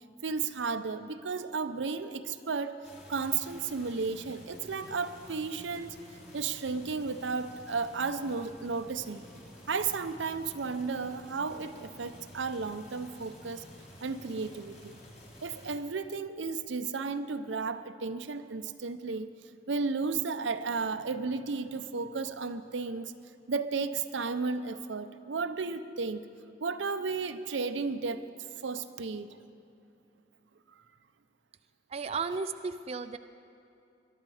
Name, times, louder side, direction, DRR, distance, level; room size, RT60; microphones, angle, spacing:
voice 1, 0.2-2.8 3.1-6.0 6.3-9.2 9.7-13.6 14.0-15.0 15.4-19.3 19.7-23.1 23.5-26.2 26.6-28.2 28.6-29.3 30.7-30.8, right 4 dB, 90° right, 10 dB, 0.6 m, -33 dB
sound 1, 2.8-15.8, equal, 40° left, 2.8 m, -51 dB
voice 2, 31.9-33.2, right 4 dB, 35° right, 9 dB, 0.4 m, -34 dB
21.5 x 11.5 x 4.9 m, 2.7 s
head